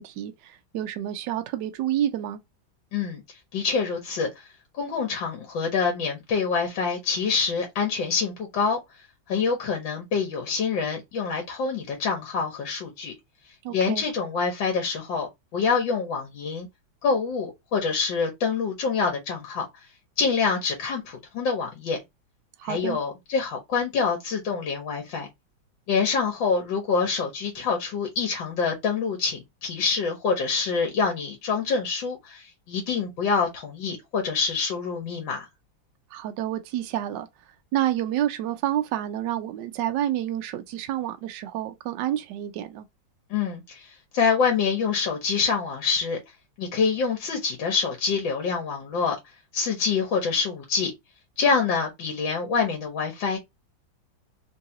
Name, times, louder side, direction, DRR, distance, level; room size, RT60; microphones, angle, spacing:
voice 1, 0.0-2.4 13.6-14.0 22.6-23.0 36.1-37.3 37.7-42.9, right 12 dB, 75° right, 1.1 m, -29 dB
voice 2, 3.5-4.3 4.7-8.8 9.3-13.1 13.7-16.7 17.0-19.7 20.2-22.0 22.6-25.3 25.9-35.5 43.3-46.2 46.6-49.2 49.5-50.9 51.4-53.4, left 5 dB, 75° left, 1.7 m, -26 dB
3.8 x 2.4 x 2.8 m
omnidirectional pair, 2.1 m